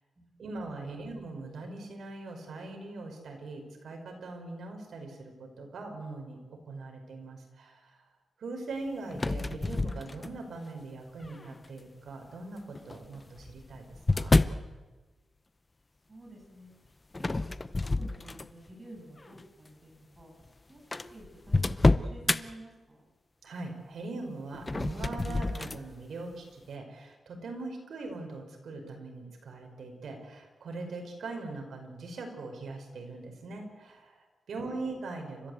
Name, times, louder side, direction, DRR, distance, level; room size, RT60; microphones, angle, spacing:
voice 1, 0.4-8.1 8.4-13.8 14.1-14.4 23.4-35.5, right 3 dB, 75° right, 3 dB, 5.2 m, -41 dB
sound 1, 9.1-10.6 11.2-11.7 12.8-14.7 17.1-18.7 19.2-19.4 20.2-20.3 20.5-20.6 20.9-22.4 24.5-25.8, left 2 dB, 25° left, 0.7 m, -28 dB
voice 2, 16.1-16.7 17.2-17.6 18.0-20.3 20.7-23.1, right 1 dB, 30° right, 1 dB, 8.0 m, -50 dB
30.0 x 14.0 x 8.1 m, 1.3 s
wide cardioid pair, 105°, 0 cm